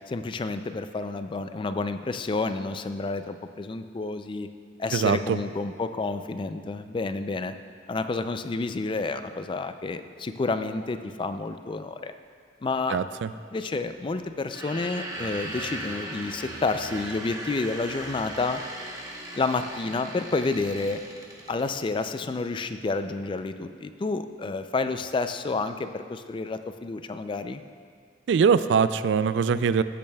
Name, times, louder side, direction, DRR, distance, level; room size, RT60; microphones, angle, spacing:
voice 1, 0.1-4.5 4.8-7.5 7.9-12.1 12.6-13.0 13.5-18.6 19.4-21.0 21.5-27.6, left 3 dB, 25° left, 9 dB, 0.3 m, -30 dB
voice 2, 4.9-5.4 12.9-13.3 28.3-29.8, right 6 dB, 70° right, 14 dB, 0.3 m, -22 dB
sound 1, 14.4-21.7, right 1 dB, 20° right, 1.0 m, -38 dB
15.5 x 8.6 x 2.3 m, 2.1 s
head